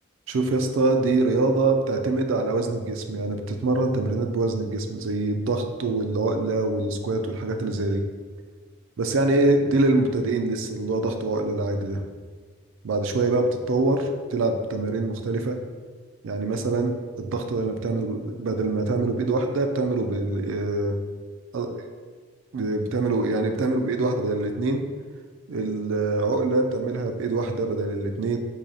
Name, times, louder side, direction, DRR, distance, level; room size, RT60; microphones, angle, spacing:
voice 1, 0.3-8.0 9.0-12.0 12.8-15.6 16.2-16.9 17.2-21.0 21.5-21.7 22.5-24.8 25.5-28.4, right 2 dB, 70° right, 6 dB, 0.4 m, -24 dB
4.7 x 2.8 x 2.7 m, 1.5 s
head